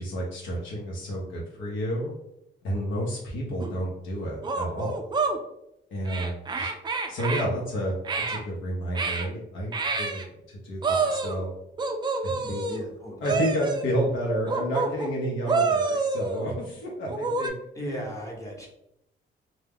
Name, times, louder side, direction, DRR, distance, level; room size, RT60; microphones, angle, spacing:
voice 1, 0.0-2.1 2.6-5.1 5.9-6.7 7.1-11.5 12.2-12.6 13.2-17.5 17.8-18.0, equal, 75° left, -2 dB, 0.7 m, -30 dB
sound 1, 3.6-3.7 4.4-5.4 6.1-7.5 8.0-8.4 9.0-9.3 9.7-10.3 10.8-11.4 11.8-12.8 13.2-13.9 14.5-15.1 15.5-16.5 17.1-17.5, right 4 dB, 20° right, 0.3 m, -28 dB
voice 2, 12.2-13.3 17.7-18.7, equal, 15° left, -2 dB, 0.8 m, -37 dB
2.2 x 2.1 x 3.4 m, 0.79 s
cardioid pair, 90°, 20 cm